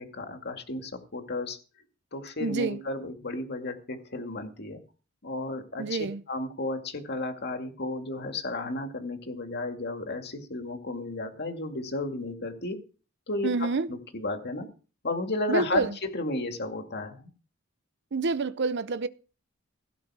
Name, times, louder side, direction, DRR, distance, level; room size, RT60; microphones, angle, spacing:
voice 1, 0.0-1.6 2.1-4.8 5.2-12.8 13.3-14.7 15.0-17.3, left 2 dB, 55° left, 2.2 m, -33 dB
voice 2, 2.4-2.8 5.8-6.2 13.4-13.9 15.5-15.9 18.1-19.1, right 3 dB, 60° right, 0.6 m, -28 dB
16.5 x 8.8 x 4.8 m
head